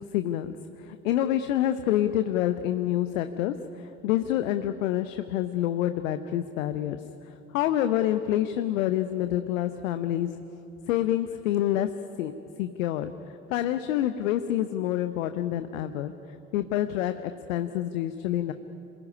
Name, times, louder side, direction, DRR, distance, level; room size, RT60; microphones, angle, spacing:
voice 1, 0.1-10.4 10.9-12.3 12.6-13.1 13.5-16.1 16.5-18.5, left 12 dB, 65° left, 10 dB, 1.0 m, -27 dB
27.0 x 21.0 x 9.8 m, 2.9 s
figure-of-eight pair, 60°, 42 cm